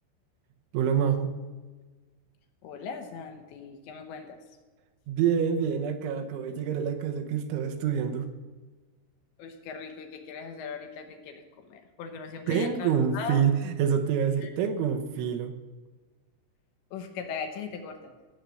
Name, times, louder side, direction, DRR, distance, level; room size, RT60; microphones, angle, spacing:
voice 1, 0.7-1.3 5.1-8.3 12.5-15.5, right 7 dB, 75° right, 5 dB, 3.2 m, -27 dB
voice 2, 2.6-4.4 9.4-13.4 14.4-14.5 16.9-18.1, left 5 dB, 70° left, 5 dB, 3.1 m, -39 dB
16.0 x 8.2 x 7.7 m, 1.3 s
omnidirectional pair, 5.8 m